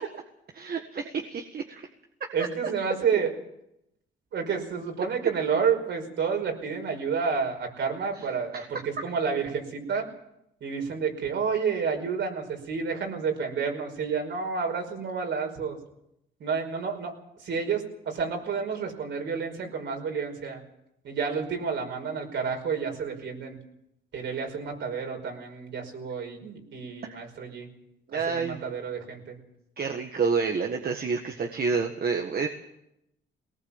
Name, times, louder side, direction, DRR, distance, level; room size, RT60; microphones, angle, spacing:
voice 1, 0.5-1.9 8.5-8.6 27.1-27.2 28.1-28.6 29.8-32.5, right 5 dB, 50° right, 4 dB, 1.7 m, -29 dB
voice 2, 2.3-3.3 4.3-10.0 10.6-15.8 16.4-17.1 17.4-20.6 21.0-23.6 24.1-27.7 28.3-29.4, right 6 dB, 65° right, 3 dB, 5.4 m, -30 dB
20.0 x 19.0 x 7.3 m, 0.82 s
cardioid pair, 90°, 20 cm